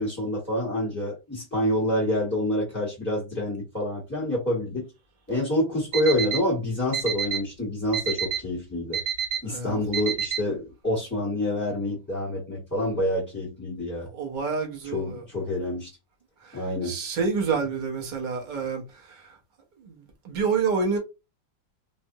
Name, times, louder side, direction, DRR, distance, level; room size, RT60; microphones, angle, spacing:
voice 1, 0.0-4.8 5.3-9.0 9.4-14.1 14.9-15.9 16.5-17.0, left 1 dB, 10° left, 0.8 m, -27 dB
Alarm, 5.9-6.4 6.9-7.4 7.9-8.4 8.9-9.4 9.9-10.4, right 8 dB, 75° right, 1.3 m, -27 dB
voice 2, 9.4-9.8 14.1-15.2 16.4-19.4 19.8-21.0, right 5 dB, 45° right, 0.6 m, -28 dB
3.3 x 2.0 x 2.7 m
omnidirectional pair, 2.0 m